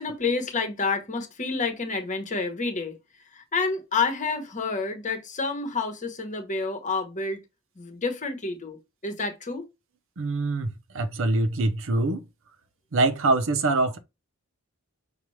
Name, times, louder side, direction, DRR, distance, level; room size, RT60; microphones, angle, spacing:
voice 1, 0.0-7.4 7.8-9.7, left 4 dB, 35° left, 1.1 m, -29 dB
voice 2, 10.2-12.2 12.9-14.0, right 2 dB, 65° right, 0.7 m, -24 dB
5.9 x 2.3 x 3.1 m
head